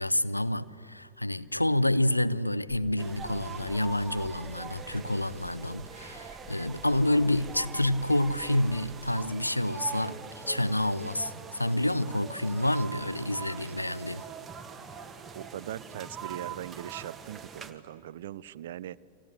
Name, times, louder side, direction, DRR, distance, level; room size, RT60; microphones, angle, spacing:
voice 1, 0.0-14.2, left 1 dB, 85° left, 0.7 m, -28 dB
sound 1, 2.7-9.3, equal, 10° left, 7.9 m, -52 dB
sound 2, 3.0-17.7, right 6 dB, 20° right, 1.8 m, -43 dB
voice 2, 15.3-19.0, right 12 dB, 60° right, 0.6 m, -40 dB
29.5 x 25.5 x 7.9 m
figure-of-eight pair, 90°, 0 cm